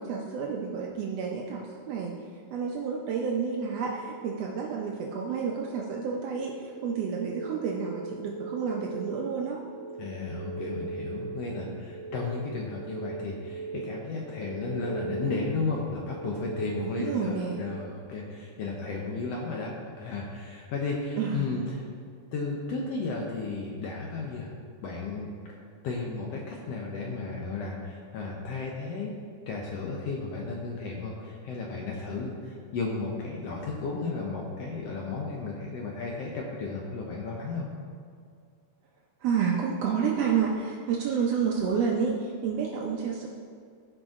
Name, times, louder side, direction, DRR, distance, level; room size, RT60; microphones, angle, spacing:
voice 1, 0.0-2.2 2.5-9.6 16.8-17.6 21.2-21.5 39.2-43.3, right 6 dB, 85° right, -1 dB, 1.4 m, -30 dB
sound 1, 3.3-17.9, right 4 dB, 35° left, 2.9 m, -41 dB
voice 2, 10.0-21.8 22.3-24.5 24.8-25.3 25.8-29.1 29.5-37.7, left 4 dB, 70° left, -1 dB, 1.5 m, -34 dB
14.5 x 5.3 x 3.7 m, 2.2 s
omnidirectional pair, 3.8 m